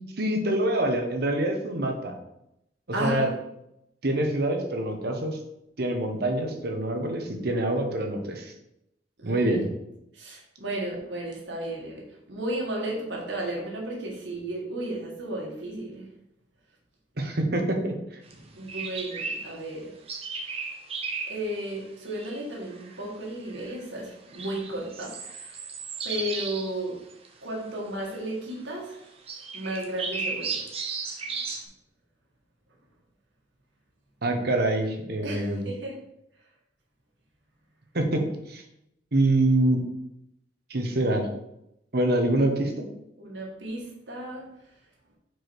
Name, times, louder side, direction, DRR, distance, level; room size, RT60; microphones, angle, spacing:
voice 1, 0.2-2.1 3.0-3.3 4.0-5.4 5.8-8.5 9.2-9.7 17.2-18.0 34.2-35.6 37.9-38.2 38.5-38.6 39.1-39.8 40.7-41.3 41.9-42.9, right 1 dB, 60° right, 3 dB, 1.0 m, -25 dB
voice 2, 2.9-3.3 9.2-9.6 10.1-16.0 18.4-19.9 21.2-25.4 26.0-27.0 27.4-29.0 29.5-30.6 35.2-36.0 43.2-44.5, right 1 dB, 80° right, -2 dB, 1.9 m, -34 dB
sound 1, 18.3-18.4 18.7-19.6 20.1-21.4 22.1-22.4 22.7-23.1 23.5-23.8 24.3-26.8 27.1-27.3 28.1-28.2 29.3-31.6, right 4 dB, 35° right, 0.8 m, -35 dB
4.8 x 4.7 x 4.7 m, 0.83 s
head